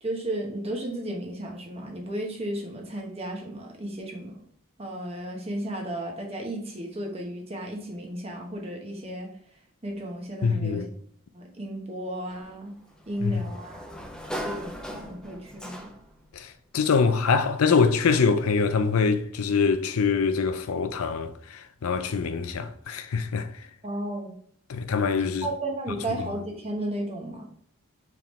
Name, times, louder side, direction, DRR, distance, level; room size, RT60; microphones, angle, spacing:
voice 1, 0.0-4.3 4.8-9.3 9.8-10.9 11.3-12.7 13.1-14.0 14.3-15.9 23.8-24.3 25.4-27.4, right 1 dB, 30° right, 0.9 m, -34 dB
voice 2, 10.4-10.9 13.2-13.4 16.3-23.5 24.7-25.5, left 5 dB, 90° left, 0.5 m, -24 dB
Sliding door, 12.3-16.2, equal, 5° left, 0.4 m, -39 dB
4.6 x 3.6 x 3.0 m
head